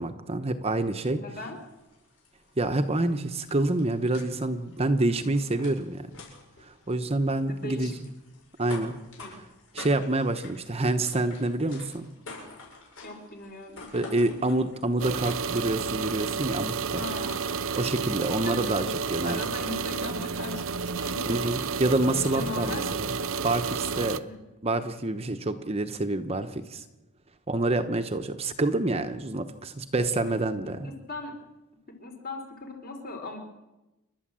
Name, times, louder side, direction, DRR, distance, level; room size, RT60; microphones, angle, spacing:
voice 1, 0.0-1.2 2.6-6.1 6.6-7.9 8.6-8.9 9.7-12.1 13.9-17.0 17.8-18.8 19.1-19.4 21.3-23.1 23.4-24.3 24.6-26.8 27.5-30.9, right 2 dB, 25° right, 8 dB, 0.9 m, -27 dB
voice 2, 1.2-1.6 7.5-8.0 9.2-9.3 13.0-14.3 16.9-17.5 18.4-18.8 19.3-21.3 21.5-21.7 22.3-22.8 24.2-24.4 30.2-30.3 30.8-31.3 32.0-33.4, left 2 dB, 45° left, 3 dB, 3.8 m, -39 dB
sound 1, 1.3-17.8, left 2 dB, 65° left, 7.6 m, -49 dB
sound 2, 15.0-24.2, right 5 dB, 65° right, 0.8 m, -31 dB
29.0 x 12.0 x 7.6 m, 1.1 s
head